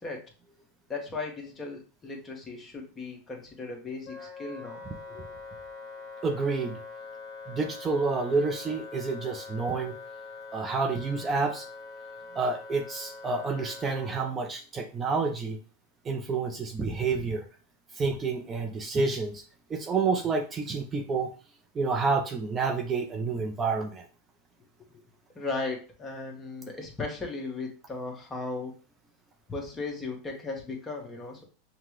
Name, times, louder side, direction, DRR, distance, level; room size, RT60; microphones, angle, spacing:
voice 1, 0.9-4.8 5.1-5.2 25.3-28.8 29.5-31.4, left 3 dB, 20° left, 1 dB, 1.2 m, -36 dB
Wind instrument woodwind instrument, 4.0-14.3, left 4 dB, 55° left, 1.6 m, -43 dB
voice 2, 6.2-6.8 7.5-10.0 10.5-11.7 12.3-15.6 16.0-17.4 17.9-19.4 19.7-21.3 21.7-24.0, right 4 dB, 25° right, 3 dB, 0.6 m, -29 dB
5.7 x 2.3 x 3.2 m, 0.36 s
supercardioid pair, 120°, 0 cm